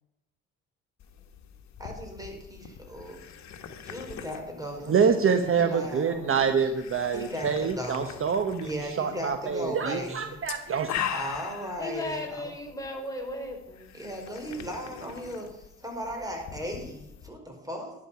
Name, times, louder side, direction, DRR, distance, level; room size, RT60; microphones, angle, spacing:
sound 1, 1.0-17.3, left 8 dB, 65° left, 1.6 m, -42 dB
voice 1, 1.8-3.2 3.8-6.5 7.1-8.1 8.6-10.4 11.1-12.5 13.9-17.9, equal, 10° right, 2 dB, 4.6 m, -37 dB
voice 2, 4.9-8.7 9.0-10.9, right 6 dB, 45° right, 8 dB, 1.1 m, -26 dB
voice 3, 11.8-13.8, left 1 dB, 10° left, 1 dB, 4.0 m, -35 dB
11.5 x 11.0 x 5.8 m, 0.90 s
cardioid pair, 90°, 30 cm